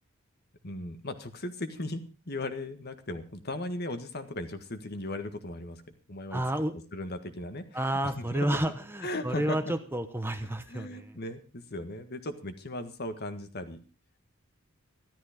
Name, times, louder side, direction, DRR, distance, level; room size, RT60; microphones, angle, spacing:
voice 1, 0.6-5.8 6.1-6.4 6.9-7.6 8.2-8.6 9.0-9.7 10.7-13.8, left 1 dB, 50° left, 8 dB, 1.7 m, -37 dB
voice 2, 6.3-6.7 7.7-11.2, right 1 dB, 10° right, 8 dB, 1.0 m, -30 dB
14.0 x 12.5 x 5.1 m, 0.36 s
head